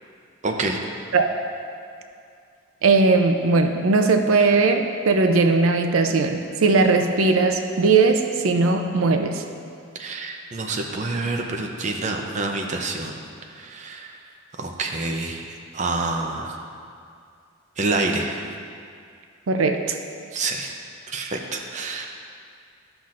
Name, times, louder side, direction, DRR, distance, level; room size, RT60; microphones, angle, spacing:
voice 1, 0.4-0.8 10.0-13.1 13.6-14.2 14.6-16.6 17.8-18.5 20.3-20.7 21.1-22.1, right 3 dB, 35° right, 2 dB, 0.5 m, -27 dB
voice 2, 2.8-9.4 19.5-20.0, right 3 dB, 85° right, 5 dB, 0.5 m, -19 dB
12.0 x 5.7 x 2.5 m, 2.4 s
head